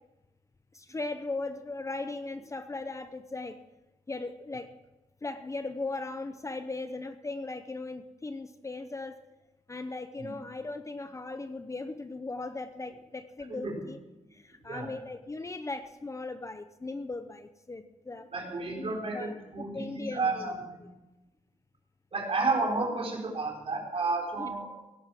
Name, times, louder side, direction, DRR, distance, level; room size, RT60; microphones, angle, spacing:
voice 1, 0.7-3.6 4.1-4.7 5.2-9.2 9.7-14.0 14.3-18.3 18.8-20.5 24.4-24.5, left 3 dB, 25° left, 10 dB, 0.7 m, -38 dB
voice 2, 18.3-20.9 22.1-24.7, right 3 dB, 50° right, 0 dB, 4.0 m, -31 dB
17.5 x 10.5 x 6.1 m, 1.0 s
wide cardioid pair, 130°, 13 cm